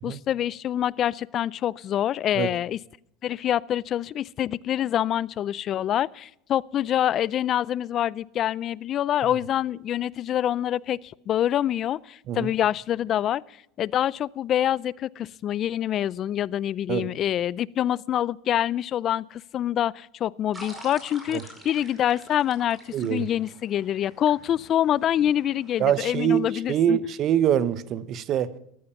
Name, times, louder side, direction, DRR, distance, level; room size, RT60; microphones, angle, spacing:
voice 1, 0.0-2.8 3.2-13.4 13.8-27.0, left 11 dB, 40° left, 0.4 m, -26 dB
sound 1, 20.5-26.0, equal, 10° right, 4.9 m, -47 dB
voice 2, 22.9-23.3 25.8-28.5, right 10 dB, 45° right, 1.0 m, -24 dB
14.0 x 13.0 x 5.8 m
supercardioid pair, 115°, 0 cm